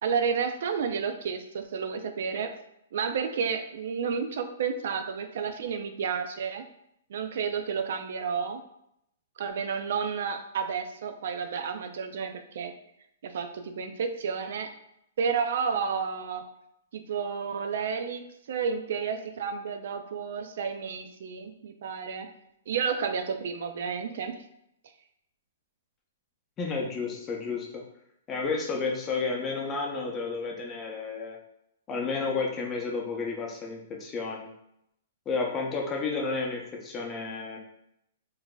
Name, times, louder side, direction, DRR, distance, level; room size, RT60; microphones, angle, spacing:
voice 1, 0.0-2.5 2.9-6.6 7.1-8.6 9.4-12.7 13.2-14.7 15.2-16.4 16.9-18.2 18.5-22.3 22.7-24.4, right 6 dB, 65° right, 7 dB, 0.3 m, -31 dB
voice 2, 26.6-27.8 28.3-31.4 31.9-34.5 35.3-37.6, left 4 dB, 20° left, -1 dB, 0.6 m, -31 dB
3.7 x 2.6 x 2.2 m, 0.78 s
hypercardioid pair, 150°, 0 cm